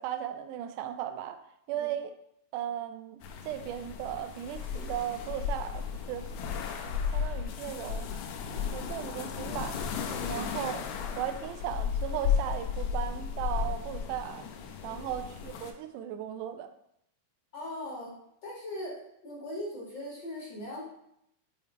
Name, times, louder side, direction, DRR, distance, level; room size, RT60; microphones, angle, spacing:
voice 1, 0.0-1.4 1.7-2.1 2.5-6.3 7.1-8.1 8.5-9.8 10.3-10.8 11.2-14.4 14.8-16.7, right 10 dB, 80° right, 9 dB, 2.1 m, -36 dB
sound 1, 3.2-15.7, left 7 dB, 80° left, 1.9 m, -34 dB
voice 2, 10.1-10.5 14.8-15.0 17.5-18.2 18.4-20.8, left 1 dB, 40° left, -5 dB, 2.0 m, -40 dB
9.0 x 3.2 x 4.4 m, 0.76 s
omnidirectional pair, 3.7 m